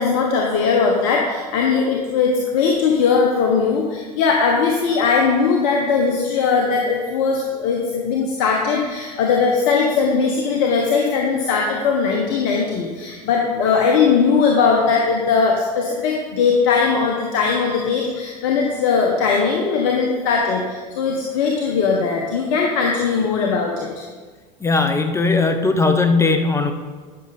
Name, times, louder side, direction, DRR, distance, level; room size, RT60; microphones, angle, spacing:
voice 1, 0.0-24.1, left 5 dB, 60° left, 0 dB, 1.3 m, -19 dB
voice 2, 24.6-26.7, left 3 dB, 15° left, 7 dB, 1.0 m, -18 dB
11.5 x 6.5 x 4.3 m, 1.5 s
hypercardioid pair, 85°, 21 cm